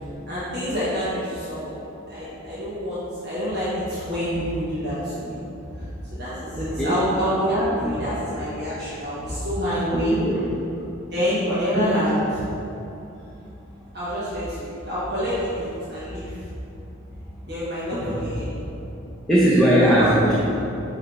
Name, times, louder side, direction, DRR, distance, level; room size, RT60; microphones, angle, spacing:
voice 1, 0.3-5.3 5.8-5.9 6.1-10.2 11.1-12.4 13.9-16.4 17.4-18.5 19.8-20.1, equal, 55° right, -11 dB, 1.3 m, -27 dB
voice 2, 19.3-20.3, right 1 dB, ahead, -9 dB, 0.7 m, -19 dB
6.2 x 3.2 x 4.8 m, 2.8 s
head